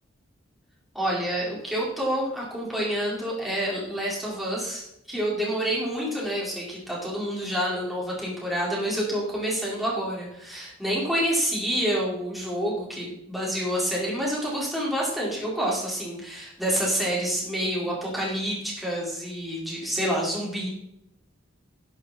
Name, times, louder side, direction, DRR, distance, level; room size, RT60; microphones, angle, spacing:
voice 1, 0.9-20.7, equal, ahead, -6 dB, 4.6 m, -28 dB
11.0 x 11.0 x 4.3 m, 0.79 s
head